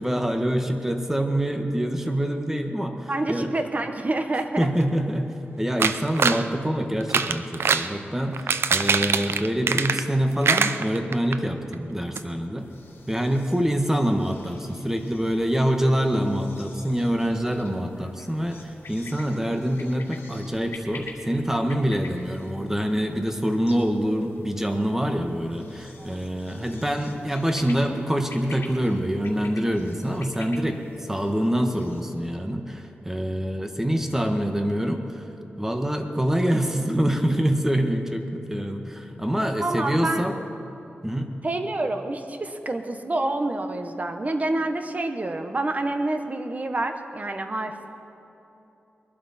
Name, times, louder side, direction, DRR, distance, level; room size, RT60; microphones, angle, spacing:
voice 1, 0.0-3.5 4.6-12.7 13.1-35.2 35.6-40.4 41.0-41.3, equal, 10° right, 5 dB, 1.5 m, -25 dB
voice 2, 3.1-4.7 13.4-13.6 26.0-26.2 39.6-40.2 41.4-47.9, right 2 dB, 40° right, 6 dB, 1.2 m, -28 dB
sound 1, 5.8-6.4 7.0-7.9 8.3-10.2 10.4-11.4 11.7-11.8 12.2-12.3, right 5 dB, 80° right, 0.5 m, -23 dB
sound 2, 12.6-32.1, left 3 dB, 80° left, 2.0 m, -48 dB
21.5 x 12.0 x 4.3 m, 2.9 s
cardioid pair, 65°, 4 cm